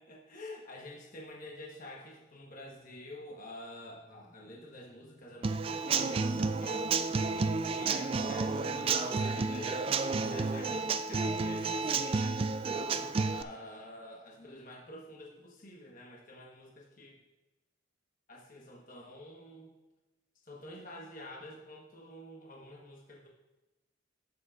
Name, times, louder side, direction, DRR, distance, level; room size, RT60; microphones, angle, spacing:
voice 1, 0.0-12.4 13.3-17.2 18.3-19.7 20.4-23.3, left 1 dB, 45° left, -2 dB, 1.2 m, -48 dB
Human voice / Acoustic guitar / Drum, 5.4-13.4, right 4 dB, 30° right, 0.3 m, -31 dB
16.0 x 6.7 x 2.4 m, 1.1 s
head